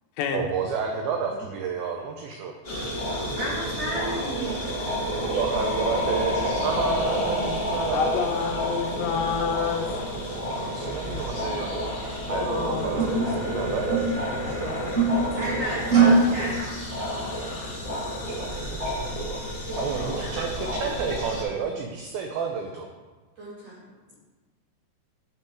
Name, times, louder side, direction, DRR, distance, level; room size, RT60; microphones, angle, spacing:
voice 1, 0.3-2.5 5.3-8.2 10.3-11.8 12.3-14.7 18.1-18.4 18.7-19.1 19.8-22.9, right 5 dB, 85° right, 2 dB, 2.1 m, -31 dB
sound 1, 2.6-21.4, equal, 30° left, 0.9 m, -30 dB
voice 2, 3.3-4.7 15.4-16.7 19.6-20.4 23.4-23.8, right 1 dB, 50° right, -6 dB, 2.1 m, -32 dB
voice 3, 7.9-9.9 12.3-13.2 14.4-15.0, left 6 dB, 85° left, 4 dB, 2.9 m, -28 dB
sound 2, 11.3-11.6 12.3-12.4 13.0-14.3 14.7-15.5 15.9-16.3, right 4 dB, 25° right, 1.7 m, -22 dB
8.6 x 5.5 x 4.6 m, 1.3 s
omnidirectional pair, 5.0 m